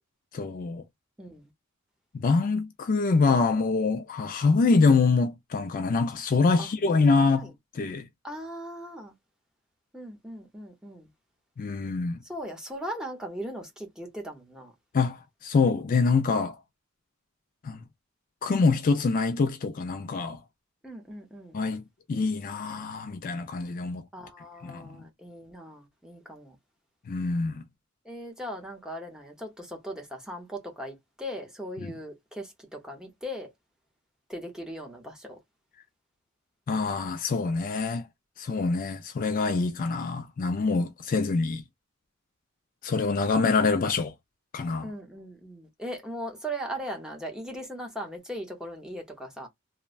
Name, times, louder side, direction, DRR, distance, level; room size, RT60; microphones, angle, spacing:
voice 1, 0.3-0.8 2.1-8.1 11.6-12.2 14.9-16.6 17.6-17.8 18.4-20.4 21.5-21.8 22.1-24.0 24.6-24.9 27.1-27.6 31.8-31.9 36.7-38.1 38.4-41.6 42.8-44.1 44.5-44.9, left 4 dB, 40° left, 0.3 m, -25 dB
voice 2, 1.2-1.5 6.6-6.7 7.1-7.5 8.2-9.1 9.9-11.1 12.2-14.7 20.8-21.6 24.1-26.6 28.0-33.5 34.3-35.4 44.8-49.5, equal, 5° right, 0.8 m, -39 dB
3.1 x 2.1 x 2.4 m
head